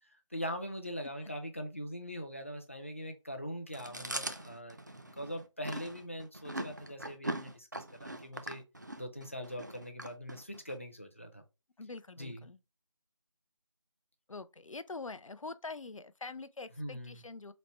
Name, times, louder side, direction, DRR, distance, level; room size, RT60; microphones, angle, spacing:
voice 1, 0.3-4.8 5.2-8.6 9.0-11.4 12.2-12.5 16.8-17.2, equal, 25° left, 0.4 m, -42 dB
Chewing mastication, 3.7-10.8, right 1 dB, 35° right, 0.4 m, -41 dB
voice 2, 11.8-12.6 14.3-17.5, left 3 dB, 80° left, 0.5 m, -44 dB
4.1 x 2.1 x 4.2 m
figure-of-eight pair, 165°, 17 cm